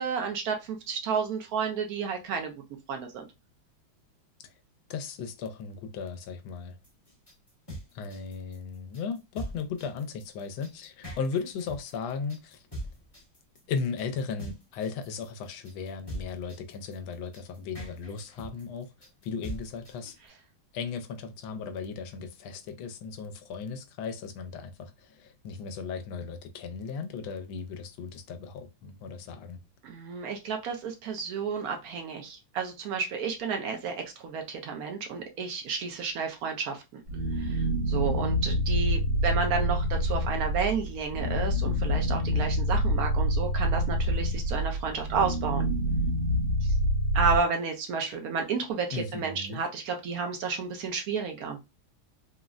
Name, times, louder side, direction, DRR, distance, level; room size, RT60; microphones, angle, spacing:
voice 1, 0.0-2.5 2.9-3.3 29.8-37.0 37.4-45.7 46.6-46.7 47.1-51.6, right 5 dB, 65° right, 0.9 m, -31 dB
voice 2, 4.9-6.8 7.9-12.6 13.7-18.9 19.2-20.1 20.7-29.6 48.9-49.6, left 5 dB, 90° left, 1.4 m, -36 dB
sound 1, 6.8-20.3, equal, 20° left, 0.8 m, -42 dB
sound 2, 37.1-47.4, equal, 85° right, 1.8 m, -27 dB
3.8 x 2.1 x 2.4 m
omnidirectional pair, 2.1 m